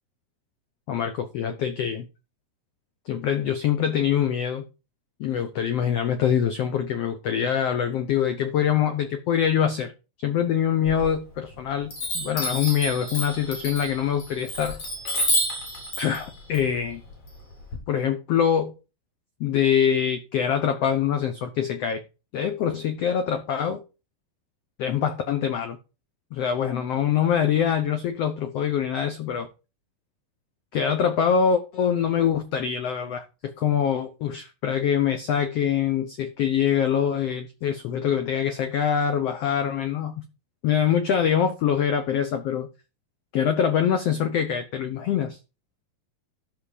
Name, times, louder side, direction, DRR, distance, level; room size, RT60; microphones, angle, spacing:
voice 1, 0.9-2.1 3.1-4.6 5.2-9.9 10.2-14.8 16.0-17.0 17.9-18.7 19.4-22.0 22.3-23.8 24.8-25.8 26.3-29.5 30.7-40.2 40.6-42.7 43.3-45.4, left 8 dB, 80° left, 1.4 m, -24 dB
Chime, 10.9-11.5 11.9-17.8, left 1 dB, 50° left, 4.9 m, -30 dB
13.0 x 6.0 x 4.9 m
omnidirectional pair, 4.1 m